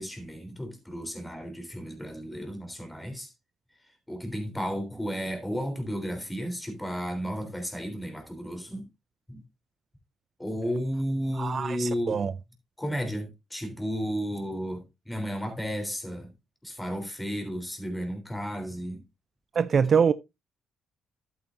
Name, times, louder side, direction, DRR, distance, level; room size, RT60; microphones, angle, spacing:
voice 1, 0.0-3.3 4.1-8.9 9.3-9.4 10.4-12.2 12.8-16.3 16.6-19.0, equal, 10° left, 3.5 m, -33 dB
voice 2, 11.4-12.3 19.5-20.1, right 6 dB, 50° right, 0.4 m, -24 dB
11.5 x 8.5 x 2.6 m
cardioid pair, 90°, 0 cm